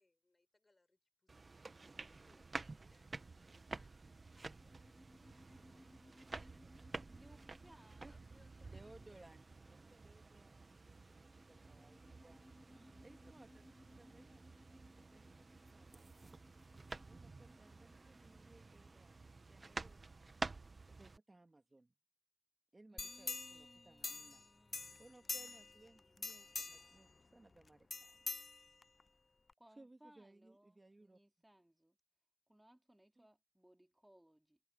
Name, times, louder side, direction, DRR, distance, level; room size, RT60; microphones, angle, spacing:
voice 1, 0.0-1.6 2.0-5.5 6.4-7.1 8.1-9.3, left 2 dB, 50° left, 5.6 m, -75 dB
sound 1, 1.3-21.2, right 3 dB, 75° right, 1.0 m, -51 dB
sound 2, 3.6-20.0, equal, 10° left, 1.7 m, -66 dB
voice 2, 7.1-8.2 12.7-13.0 22.9-26.3 29.6-32.0 32.5-34.6, right 1 dB, 15° right, 2.6 m, -67 dB
voice 3, 8.6-11.1 11.4-12.4 13.0-13.7 14.0-15.4 15.7-16.5 17.1-20.0 20.9-21.9 22.7-24.4 25.0-28.3 29.8-31.2 33.2-33.3, right 2 dB, 45° right, 1.9 m, -63 dB
sound 3, 23.0-24.5 24.7-25.8 26.2-27.0 27.9-29.0 29.5-29.6, left 3 dB, 75° left, 0.3 m, -45 dB
wide cardioid pair, 60°, 0 cm